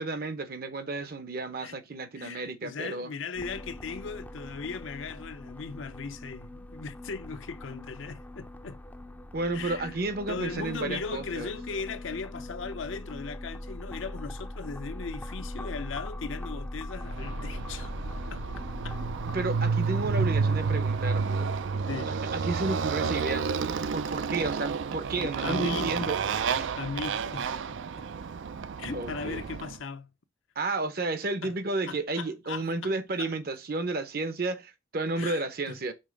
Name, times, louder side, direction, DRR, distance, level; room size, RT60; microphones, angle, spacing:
voice 1, 0.0-3.1 9.3-11.5 19.2-21.8 22.1-23.5 23.9-26.2 26.5-26.7 28.9-29.4 30.6-35.9, right 3 dB, 50° right, 0.8 m, -32 dB
voice 2, 2.1-8.8 9.5-10.0 10.3-17.9 18.3-19.0 21.9-22.2 23.0-23.1 25.4-26.1 26.4-26.5 26.8-27.5 28.0-28.1 28.8-30.1 31.4-31.5 31.9-32.9 33.2-33.3 35.2-35.8, left 5 dB, 85° left, 0.7 m, -38 dB
sound 1, 3.3-19.4, left 1 dB, 10° left, 0.4 m, -41 dB
Motorcycle, 17.1-29.8, right 5 dB, 75° right, 0.4 m, -30 dB
5.4 x 3.4 x 5.1 m
head